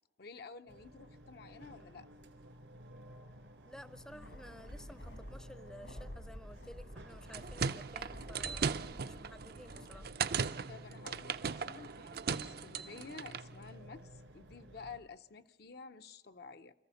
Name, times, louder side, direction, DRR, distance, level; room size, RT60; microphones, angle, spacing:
voice 1, 0.2-2.1 10.7-16.7, left 5 dB, 60° left, 9 dB, 0.7 m, -51 dB
sound 1, 0.7-15.0, right 1 dB, 85° right, 2.9 m, -55 dB
voice 2, 3.7-10.1, equal, 5° left, 13 dB, 0.6 m, -54 dB
sound 2, 3.9-10.1, equal, 85° left, 4.4 m, -50 dB
sound 3, 7.1-13.5, right 6 dB, 60° right, 0.6 m, -38 dB
26.0 x 14.5 x 7.0 m, 1.2 s
head